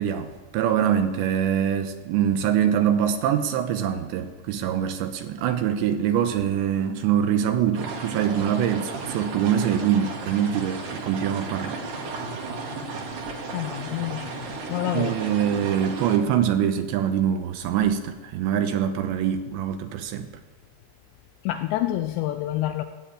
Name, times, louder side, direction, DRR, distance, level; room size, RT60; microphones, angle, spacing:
voice 1, 0.0-11.8 14.9-20.3, right 9 dB, 80° right, 2.9 m, -24 dB
sound 1, 7.8-16.2, right 3 dB, 60° right, 3.0 m, -34 dB
voice 2, 13.5-14.3 14.7-15.2 21.5-22.8, left 14 dB, 85° left, 2.5 m, -27 dB
15.5 x 9.7 x 8.6 m
omnidirectional pair, 5.6 m